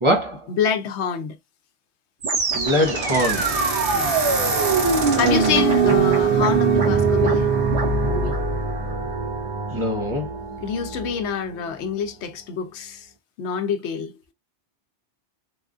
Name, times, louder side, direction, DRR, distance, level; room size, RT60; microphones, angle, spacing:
voice 1, 0.0-0.5 2.5-3.6 5.2-5.4 5.8-6.0 9.7-10.3, equal, 30° right, 0.7 m, -23 dB
voice 2, 0.6-1.4 3.9-4.2 5.1-7.5 8.1-8.3 10.6-13.1 13.4-14.1, left 7 dB, 80° left, 0.9 m, -26 dB
sound 1, 2.2-11.4, right 4 dB, 80° right, 1.3 m, -22 dB
3.5 x 2.4 x 2.4 m
omnidirectional pair, 1.1 m